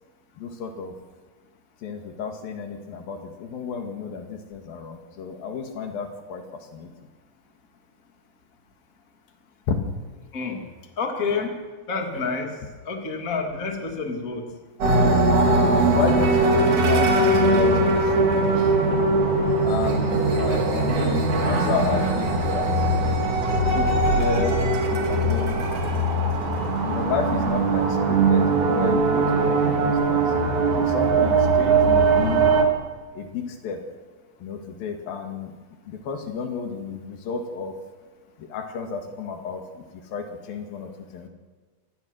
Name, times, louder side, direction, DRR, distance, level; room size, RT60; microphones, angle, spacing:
voice 1, 0.4-0.9 1.8-6.9 12.2-12.3 15.9-18.7 19.7-22.9 23.7-25.6 26.8-30.3 30.8-32.5 33.2-33.8 34.4-35.5 35.9-37.8 38.4-39.9 40.1-41.3, left 5 dB, 75° left, 5 dB, 3.7 m, -32 dB
voice 2, 10.3-10.6 11.0-11.6 11.9-12.5 12.8-14.4, left 4 dB, 25° left, 3 dB, 2.7 m, -28 dB
sound 1, 14.8-32.6, right 2 dB, 55° right, 4.1 m, -20 dB
25.0 x 20.0 x 6.4 m, 1.3 s
omnidirectional pair, 4.2 m